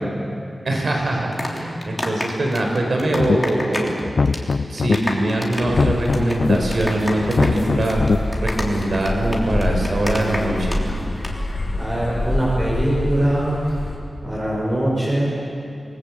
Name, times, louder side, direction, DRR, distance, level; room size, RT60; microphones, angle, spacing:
voice 1, 0.6-4.0 4.7-8.0 8.4-10.8, right 1 dB, 65° right, 1 dB, 4.9 m, -22 dB
sound 1, 1.1-4.0 4.3-4.5 4.8-10.8 11.1-11.3, left 1 dB, 10° left, 3.4 m, -29 dB
sound 2, 3.1-3.6 4.0-5.0 5.6-6.6 7.2-8.2, left 4 dB, 65° left, 0.6 m, -20 dB
sound 3, 5.7-14.0, left 1 dB, 35° left, 4.4 m, -27 dB
voice 2, 11.8-13.6 14.2-15.4, right 1 dB, 35° right, -6 dB, 6.1 m, -22 dB
28.0 x 20.0 x 8.7 m, 2.5 s
wide cardioid pair, 105°, 0 cm